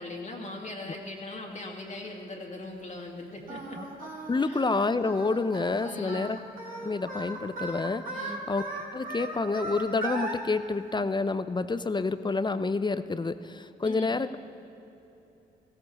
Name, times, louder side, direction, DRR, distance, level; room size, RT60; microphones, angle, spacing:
voice 1, 0.0-3.8 4.4-4.6 5.8-6.3 8.1-8.5 13.8-14.2, left 2 dB, 40° left, 0 dB, 2.0 m, -40 dB
Singing, 3.5-10.4, right 2 dB, 45° right, 2.7 m, -38 dB
voice 2, 4.3-6.4 6.8-8.6 8.9-14.3, left 3 dB, 25° left, 13 dB, 0.6 m, -28 dB
15.5 x 13.5 x 4.2 m, 3.0 s
supercardioid pair, 50°, 20 cm